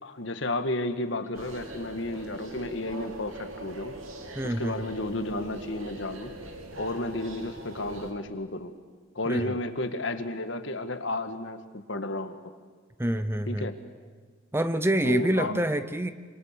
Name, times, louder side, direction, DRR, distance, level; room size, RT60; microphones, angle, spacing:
voice 1, 0.0-3.9 4.4-6.3 6.8-8.7 9.1-12.4 13.5-13.8 15.0-15.6, left 2 dB, 60° left, 9 dB, 1.7 m, -32 dB
sound 1, 1.3-8.1, right 1 dB, 80° right, 3.1 m, -42 dB
voice 2, 4.3-4.9 9.3-9.6 13.0-13.7 14.5-16.1, right 1 dB, 10° right, 12 dB, 0.7 m, -27 dB
26.5 x 26.0 x 6.8 m, 1.5 s
head